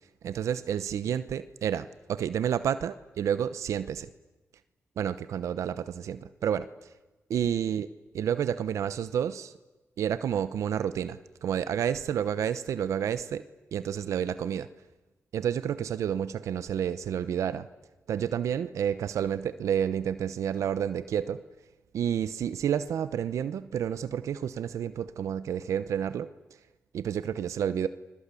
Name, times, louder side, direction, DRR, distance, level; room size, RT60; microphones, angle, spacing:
voice 1, 0.2-4.1 5.0-6.7 7.3-7.9 8.1-9.5 10.0-13.4 13.7-14.7 15.3-17.7 18.1-21.4 21.9-26.3 26.9-27.9, right 9 dB, 80° right, 13 dB, 0.9 m, -30 dB
29.5 x 22.0 x 8.4 m, 1.1 s
cardioid pair, 65°, 5 cm